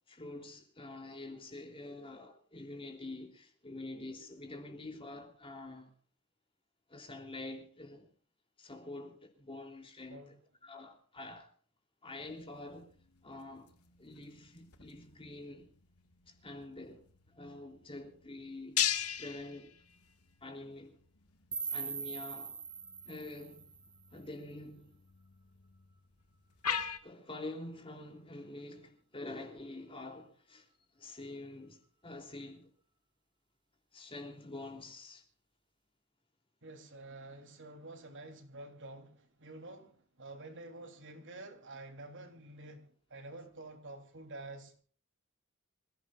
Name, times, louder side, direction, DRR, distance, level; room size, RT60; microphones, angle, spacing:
voice 1, 0.1-5.9 6.9-8.1 8.6-10.3 10.6-11.5 12.0-12.9 13.2-13.7 14.0-15.7 16.3-19.7 20.4-21.0 21.6-22.6 23.0-23.7 24.1-25.0 27.0-30.7 30.9-32.7 33.9-35.2, left 2 dB, 25° left, 3.4 m, -47 dB
sound 1, 12.2-27.0, left 9 dB, 85° left, 2.0 m, -42 dB
sound 2, 21.5-24.5, right 6 dB, 20° right, 1.3 m, -42 dB
voice 2, 36.6-44.7, right 2 dB, 55° right, 3.5 m, -49 dB
27.0 x 16.5 x 2.5 m
head